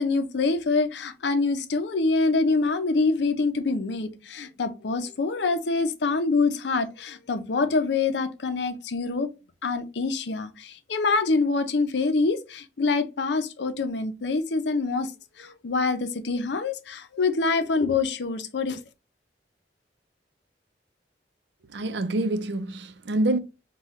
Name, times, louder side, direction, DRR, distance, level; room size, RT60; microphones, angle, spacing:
voice 1, 0.0-9.3 9.6-15.1 15.4-18.8, left 3 dB, 70° left, 0.6 m, -25 dB
voice 2, 21.7-23.4, right 2 dB, 70° right, 0.5 m, -26 dB
5.5 x 2.3 x 3.0 m
head